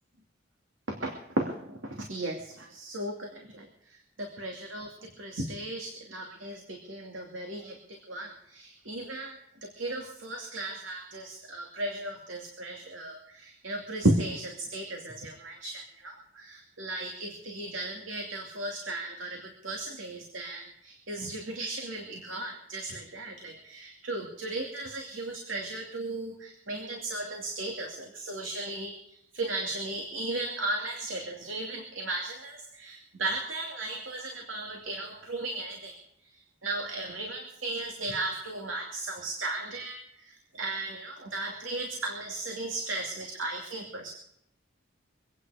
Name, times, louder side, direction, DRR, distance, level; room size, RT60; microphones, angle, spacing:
voice 1, 1.4-3.7 4.2-4.9 5.2-35.9 36.6-44.1, right 2 dB, 75° right, 1 dB, 2.6 m, -35 dB
25.0 x 9.5 x 5.0 m, 0.75 s
head